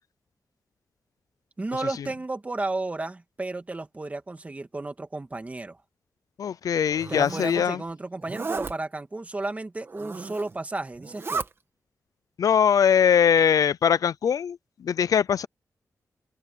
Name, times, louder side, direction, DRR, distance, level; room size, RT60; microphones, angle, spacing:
voice 1, 1.6-5.8 7.1-11.4, right 2 dB, 25° right, 2.3 m, -33 dB
voice 2, 6.4-7.8 12.4-15.5, left 8 dB, 70° left, 0.5 m, -21 dB
Zipper (clothing), 6.8-7.6 8.2-8.7 9.8-10.5 11.0-11.5, right 4 dB, 40° right, 2.0 m, -34 dB
open air
wide cardioid pair, 130°, 6 cm